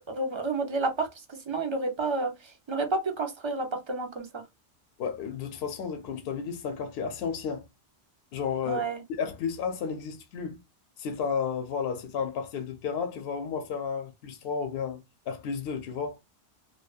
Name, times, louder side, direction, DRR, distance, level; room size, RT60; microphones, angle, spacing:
voice 1, 0.1-1.1 1.5-2.3 2.7-4.4 8.7-9.0, right 3 dB, 45° right, 0.3 m, -30 dB
voice 2, 5.0-7.7 8.3-10.6 11.0-16.2, left 6 dB, 65° left, 0.7 m, -32 dB
2.7 x 2.1 x 2.3 m
omnidirectional pair, 1.2 m